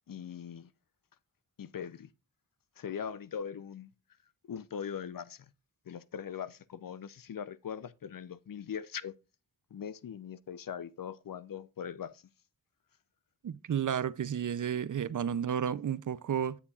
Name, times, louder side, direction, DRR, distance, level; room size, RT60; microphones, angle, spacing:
voice 1, 0.1-0.7 1.6-2.1 2.8-3.9 4.5-5.5 5.9-9.1 9.7-12.3, left 8 dB, 65° left, 0.6 m, -41 dB
voice 2, 13.4-16.6, right 8 dB, 55° right, 0.5 m, -32 dB
9.8 x 8.3 x 2.4 m
cardioid pair, 50°, 37 cm